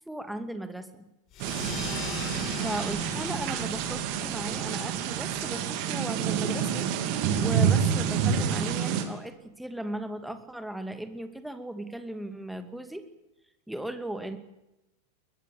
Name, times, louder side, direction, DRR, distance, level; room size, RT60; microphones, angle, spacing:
voice 1, 0.1-1.0 2.6-6.8 7.4-13.0 13.7-14.4, right 1 dB, ahead, 9 dB, 2.5 m, -37 dB
sound 1, 1.3-6.4, left 5 dB, 35° left, 6.5 m, -41 dB
sound 2, 1.4-9.0, right 7 dB, 45° right, 3.2 m, -28 dB
23.0 x 21.0 x 8.5 m, 0.94 s
figure-of-eight pair, 90°, 0 cm